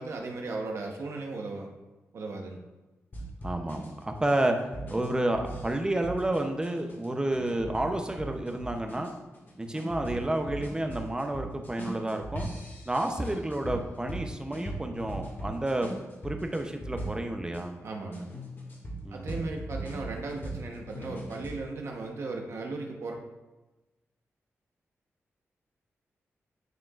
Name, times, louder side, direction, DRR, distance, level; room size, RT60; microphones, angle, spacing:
voice 1, 0.0-1.7 2.1-2.6 17.8-18.2 19.1-23.2, right 3 dB, 65° right, 1 dB, 1.0 m, -36 dB
sound 1, 3.1-17.6 18.1-21.6, right 1 dB, 45° left, 1.7 m, -40 dB
voice 2, 3.4-9.1 9.6-12.5 12.9-15.9 16.2-17.7 19.0-19.5, right 1 dB, 15° right, 4 dB, 0.7 m, -30 dB
10.5 x 4.7 x 2.5 m, 1.1 s
cardioid pair, 95°, 5 cm